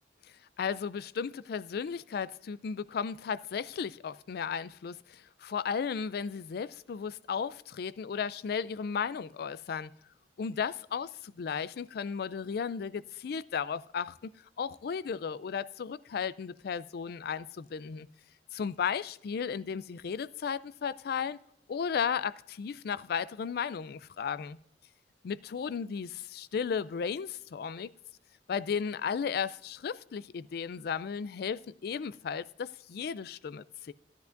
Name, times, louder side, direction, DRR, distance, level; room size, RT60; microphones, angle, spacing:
voice 1, 0.6-9.9 10.4-14.2 14.6-18.1 18.5-21.4 21.7-24.6 25.2-27.9 28.5-33.9, left 6 dB, 60° left, 0.4 m, -35 dB
15.0 x 10.5 x 2.5 m
head